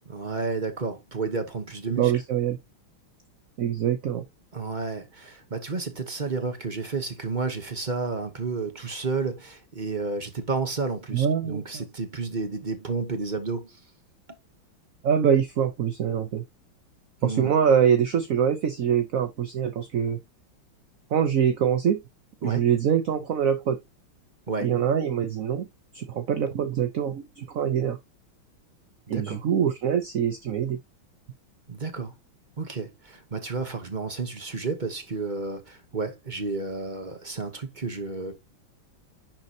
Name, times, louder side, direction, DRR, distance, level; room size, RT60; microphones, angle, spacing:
voice 1, 0.1-2.1 4.5-13.8 17.2-17.5 22.4-22.6 24.5-24.7 29.1-29.4 31.7-32.1 32.6-38.4, right 4 dB, 30° right, 1.0 m, -31 dB
voice 2, 1.9-2.6 3.6-4.2 11.1-11.8 15.0-16.4 17.2-20.2 21.1-22.0 22.4-23.8 24.6-25.7 25.9-28.0 29.1-30.8, right 8 dB, 55° right, 1.0 m, -24 dB
10.5 x 4.0 x 2.8 m
omnidirectional pair, 2.2 m